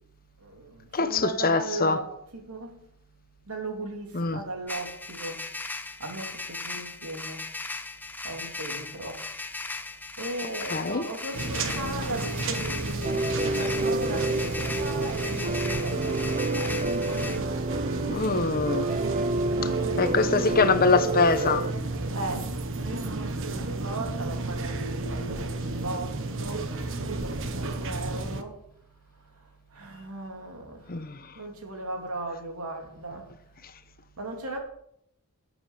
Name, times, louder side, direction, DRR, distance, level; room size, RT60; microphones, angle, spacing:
voice 1, 0.4-2.8 3.5-5.4 6.0-7.5 8.2-9.2 10.2-17.0 19.8-20.8 22.1-22.5 22.8-23.1 23.5-26.6 27.0-28.5 29.7-30.8 31.4-33.3 34.2-34.6, right 2 dB, 80° right, 2.9 m, -37 dB
voice 2, 0.9-2.0 4.1-4.4 10.7-11.0 18.1-18.9 19.6-19.7 20.0-21.6 30.9-31.2, left 4 dB, 45° left, 1.0 m, -23 dB
sound 1, 4.7-17.4, left 3 dB, 10° left, 0.9 m, -37 dB
sound 2, 11.3-28.4, right 2 dB, 65° right, 1.3 m, -32 dB
sound 3, 13.0-21.7, right 3 dB, 35° right, 0.7 m, -30 dB
11.5 x 8.0 x 7.2 m
head